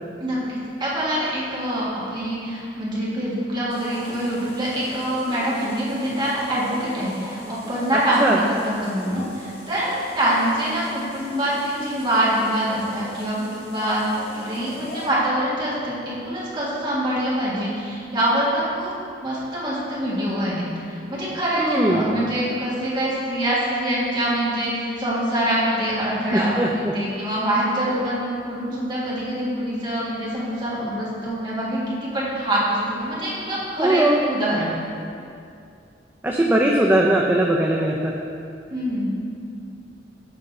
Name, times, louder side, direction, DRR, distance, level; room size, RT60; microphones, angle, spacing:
voice 1, 0.2-14.0 14.3-18.9 19.2-34.7 38.7-39.1, right 1 dB, 25° right, -8 dB, 1.8 m, -25 dB
sound 1, 3.7-15.1, equal, 35° left, 1.2 m, -40 dB
voice 2, 21.6-22.1 26.3-26.9 33.8-34.2 36.2-38.2, right 1 dB, 10° right, -1 dB, 0.4 m, -20 dB
7.8 x 5.1 x 4.2 m, 2.5 s
head